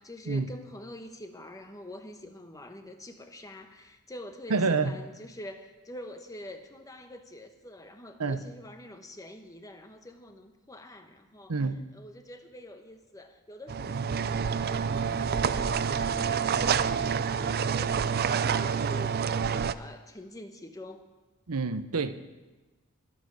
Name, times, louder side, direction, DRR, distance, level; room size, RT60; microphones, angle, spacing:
voice 1, 0.0-11.6 11.9-15.8 16.2-21.0, left 1 dB, 15° left, 1.1 m, -46 dB
voice 2, 4.5-5.0 8.2-8.4 11.5-11.8 13.9-14.1 21.5-22.1, right 4 dB, 85° right, 0.8 m, -28 dB
sound 1, 13.7-19.7, right 6 dB, 45° right, 0.4 m, -28 dB
21.5 x 7.6 x 6.4 m
head